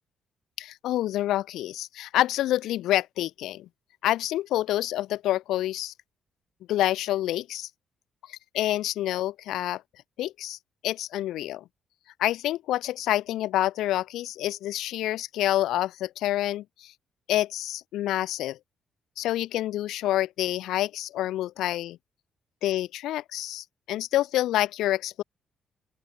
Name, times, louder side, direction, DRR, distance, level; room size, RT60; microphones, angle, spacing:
voice 1, 0.6-3.7 4.0-5.9 6.7-7.7 8.3-9.8 10.2-10.6 10.8-11.6 12.2-16.9 17.3-18.6 19.2-22.0 22.6-25.2, left 14 dB, 85° left, 0.7 m, -27 dB
open air
cardioid pair, 90°, 0 cm